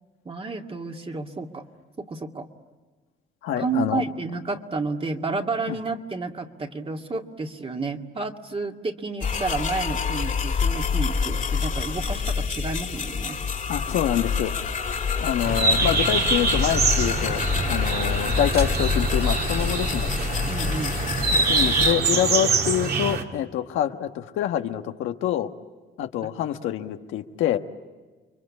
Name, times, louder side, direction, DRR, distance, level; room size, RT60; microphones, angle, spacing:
voice 1, 0.2-1.7 2.0-2.5 3.6-13.4 20.5-20.9, right 3 dB, 30° right, 3 dB, 2.3 m, -31 dB
voice 2, 3.4-4.0 5.7-5.8 13.7-14.5 15.2-20.1 21.3-25.5 26.0-27.6, left 11 dB, 90° left, 6 dB, 1.4 m, -26 dB
sound 1, 9.2-21.9, left 6 dB, 40° left, 2.5 m, -27 dB
sound 2, 15.4-23.2, right 4 dB, 55° right, 2.7 m, -25 dB
30.0 x 23.5 x 8.6 m, 1.3 s
cardioid pair, 90°, 20 cm